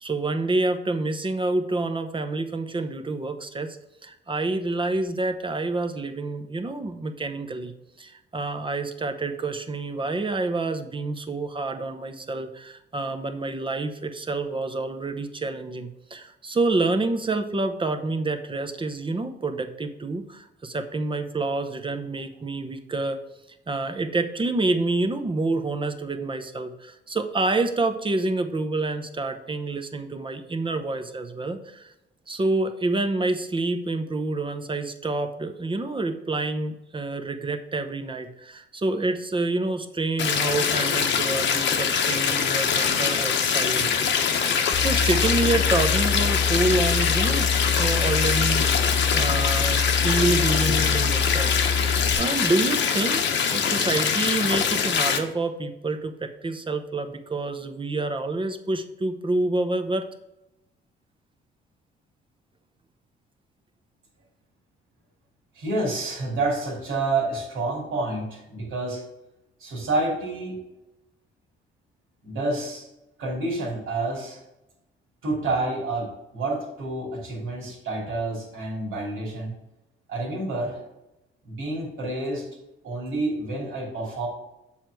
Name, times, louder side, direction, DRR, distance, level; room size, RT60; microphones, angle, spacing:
voice 1, 0.0-3.8 4.0-23.2 23.7-31.9 32.3-44.1 44.3-47.5 47.8-48.9 49.1-51.5 51.8-53.2 53.5-60.1, right 2 dB, 25° right, 8 dB, 0.8 m, -28 dB
sound 1, 40.2-55.2, left 7 dB, 65° left, 1.0 m, -23 dB
sound 2, 44.7-52.2, left 5 dB, 15° left, 1.0 m, -26 dB
voice 2, 65.5-69.0 69.6-70.6 72.2-72.9 73.2-74.4 75.2-79.5 80.1-80.8 81.4-82.5 82.8-84.3, right 2 dB, 85° right, -2 dB, 2.7 m, -28 dB
7.3 x 4.5 x 4.7 m, 0.92 s
cardioid pair, 90°, 20 cm